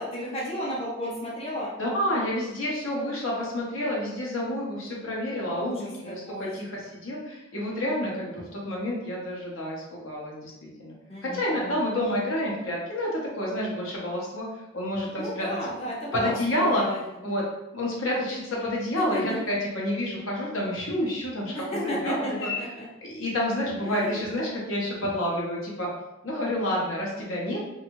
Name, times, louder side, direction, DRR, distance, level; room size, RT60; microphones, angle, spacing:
voice 1, 0.0-1.8 5.5-6.5 11.1-11.8 15.2-17.0 19.0-19.2 21.5-22.8 23.8-24.2, equal, 30° left, -5 dB, 0.6 m, -33 dB
voice 2, 1.8-10.9 11.2-15.5 16.1-16.8 17.2-17.4 17.7-22.7 23.0-25.9 26.2-27.6, left 1 dB, 80° left, -3 dB, 0.8 m, -29 dB
2.7 x 2.3 x 2.9 m, 0.99 s
head